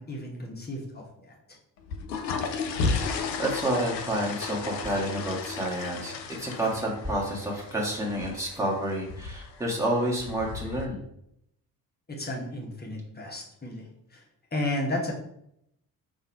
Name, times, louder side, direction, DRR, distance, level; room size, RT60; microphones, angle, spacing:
voice 1, 0.0-1.4 12.1-14.2 14.5-15.1, left 1 dB, 20° left, 0 dB, 1.3 m, -33 dB
sound 1, 1.8-10.8, left 4 dB, 85° left, 0.5 m, -34 dB
voice 2, 3.4-11.0, right 1 dB, 5° right, -4 dB, 1.7 m, -29 dB
3.7 x 2.7 x 4.5 m, 0.75 s
figure-of-eight pair, 45°, 50 cm